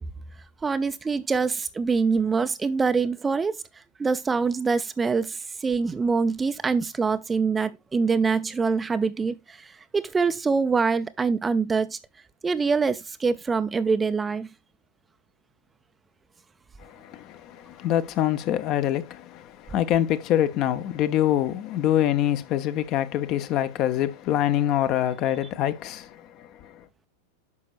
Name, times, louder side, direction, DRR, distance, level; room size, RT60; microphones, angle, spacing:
voice 1, 0.6-3.6 4.0-12.0 12.4-14.5, right 4 dB, 15° right, 0.4 m, -24 dB
voice 2, 16.8-26.8, left 12 dB, 40° left, 0.7 m, -25 dB
9.6 x 6.1 x 2.4 m
figure-of-eight pair, 90°, 0 cm